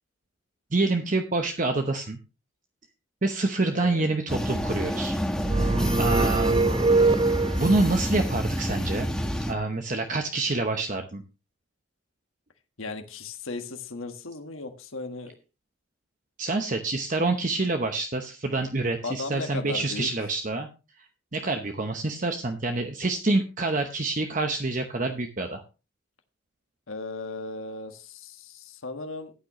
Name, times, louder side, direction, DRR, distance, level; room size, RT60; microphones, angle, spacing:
voice 1, 0.7-2.2 3.2-5.2 6.0-6.8 7.6-9.1 9.5-11.2 16.4-20.7 21.3-25.6, right 2 dB, 40° right, 5 dB, 0.9 m, -27 dB
voice 2, 3.7-4.1 12.8-15.4 19.0-20.1 26.9-29.3, left 3 dB, 85° left, 6 dB, 1.5 m, -36 dB
sound 1, 4.3-9.5, equal, 5° left, 1.2 m, -28 dB
sound 2, 5.4-7.9, right 3 dB, 25° right, 0.4 m, -23 dB
14.5 x 9.1 x 3.0 m, 0.31 s
head